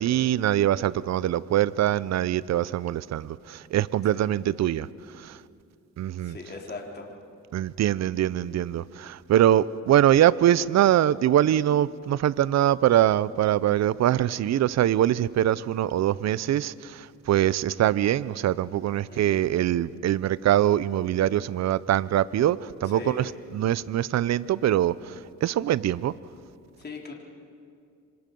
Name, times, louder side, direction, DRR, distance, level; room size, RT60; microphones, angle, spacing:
voice 1, 0.0-4.9 5.2-5.4 6.0-6.4 7.5-25.1 25.4-26.1, right 12 dB, 60° right, 19 dB, 0.7 m, -23 dB
voice 2, 6.2-7.1 19.1-19.6 22.8-23.3 26.8-27.1, left 3 dB, 35° left, 0 dB, 3.7 m, -39 dB
26.0 x 26.0 x 5.4 m, 2.3 s
cardioid pair, 90°, 30 cm